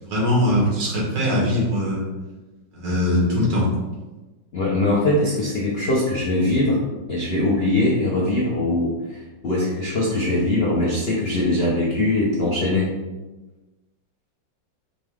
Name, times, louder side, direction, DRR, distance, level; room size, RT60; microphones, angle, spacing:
voice 1, 0.0-2.1 2.7-3.7, left 1 dB, 65° right, -5 dB, 1.8 m, -21 dB
voice 2, 4.5-12.9, left 2 dB, 75° left, -5 dB, 0.5 m, -22 dB
5.3 x 2.4 x 3.4 m, 1.2 s
omnidirectional pair, 2.1 m